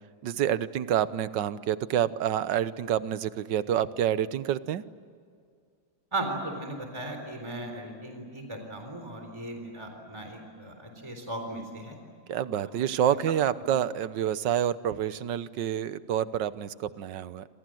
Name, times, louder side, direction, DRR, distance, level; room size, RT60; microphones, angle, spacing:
voice 1, 0.2-4.8 12.3-17.5, right 10 dB, 75° right, 15 dB, 1.5 m, -28 dB
voice 2, 6.1-12.0 12.5-12.7 13.0-13.2, right 2 dB, 15° right, 4 dB, 3.8 m, -37 dB
28.0 x 27.0 x 7.8 m, 2.2 s
omnidirectional pair, 2.0 m